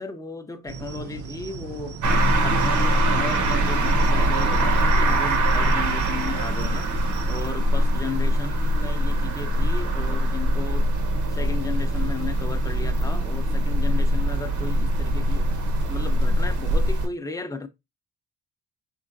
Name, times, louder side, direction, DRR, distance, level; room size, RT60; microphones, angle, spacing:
voice 1, 0.0-2.0 2.4-6.9 7.3-10.9 11.3-15.5 15.8-17.7, left 3 dB, 10° left, 0.6 m, -35 dB
sound 1, 0.7-7.5, right 5 dB, 50° right, 0.6 m, -38 dB
sound 2, 2.0-17.1, right 1 dB, 75° right, 1.0 m, -22 dB
4.5 x 3.6 x 2.5 m
cardioid pair, 90°, 30 cm